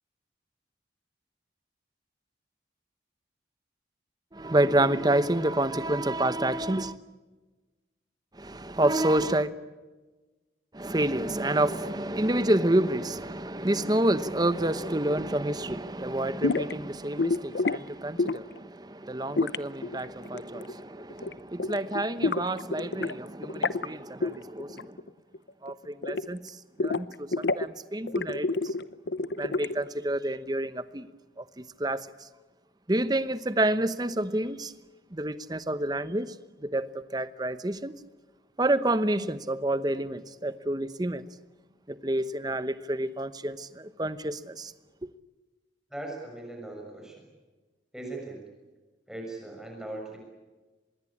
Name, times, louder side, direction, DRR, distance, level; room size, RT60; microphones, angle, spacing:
voice 1, 4.3-7.0 8.3-9.5 10.7-25.0 25.6-26.6 26.8-28.7 29.4-31.1 31.4-32.3 32.9-34.7 35.1-36.3 36.6-37.9 38.6-41.2 41.9-44.7, right 1 dB, 20° right, 0.9 m, -28 dB
sound 1, 16.4-16.7 17.2-17.8 18.2-18.6 19.4-20.8 21.1-21.3 21.6-23.1 23.4-23.9 24.2-25.1 25.3-26.5 26.8-27.7 28.1-29.9, left 3 dB, 70° left, 0.8 m, -29 dB
voice 2, 45.9-47.2 47.9-48.4 49.1-50.2, right 2 dB, 5° right, 6.5 m, -39 dB
25.5 x 22.0 x 8.7 m
head